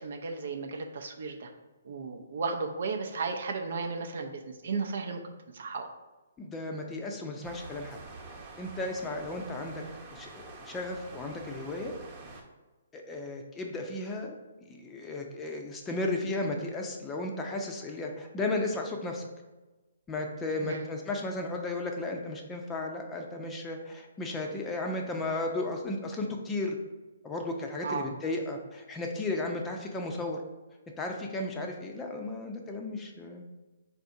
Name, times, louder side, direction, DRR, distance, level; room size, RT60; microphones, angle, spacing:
voice 1, 0.0-1.5 1.8-5.2 5.5-5.9 20.6-20.9 27.8-28.1, right 4 dB, 60° right, 4 dB, 0.6 m, -34 dB
voice 2, 6.4-8.0 8.6-9.8 10.1-11.9 12.9-14.4 14.7-19.2 20.1-26.8 27.2-30.4 31.0-33.4, left 2 dB, 15° left, 2 dB, 0.6 m, -34 dB
sound 1, 7.4-12.4, right 3 dB, 30° right, 1.0 m, -47 dB
4.1 x 2.6 x 4.7 m, 1.2 s
figure-of-eight pair, 135°, 0 cm